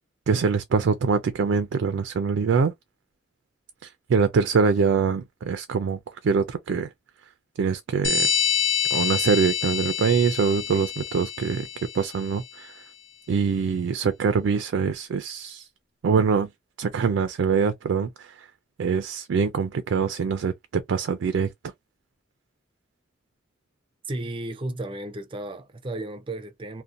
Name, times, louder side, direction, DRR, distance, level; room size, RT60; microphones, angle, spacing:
voice 1, 0.3-2.7 4.1-6.9 7.6-8.3 8.9-11.7 11.9-12.7 13.3-15.7 16.0-16.5 16.8-18.5 18.8-21.5, right 5 dB, 85° right, 0.4 m, -24 dB
sound 1, 8.0-12.3, left 7 dB, 85° left, 0.9 m, -27 dB
voice 2, 24.1-26.8, right 1 dB, 30° right, 0.5 m, -34 dB
2.6 x 2.1 x 2.5 m
head